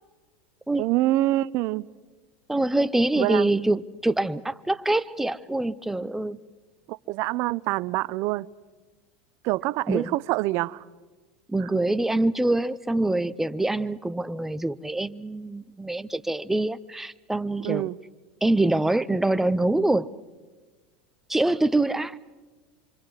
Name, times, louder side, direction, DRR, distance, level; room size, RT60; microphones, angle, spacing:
voice 1, 0.8-1.9 3.2-3.5 6.9-8.5 9.4-10.8 11.6-11.7 17.6-18.0, right 17 dB, 55° right, 0.6 m, -26 dB
voice 2, 2.5-6.4 9.9-10.2 11.5-17.9 18.4-20.1 21.3-22.2, right 2 dB, 5° right, 0.6 m, -25 dB
27.5 x 25.0 x 4.9 m
hypercardioid pair, 105°, 5 cm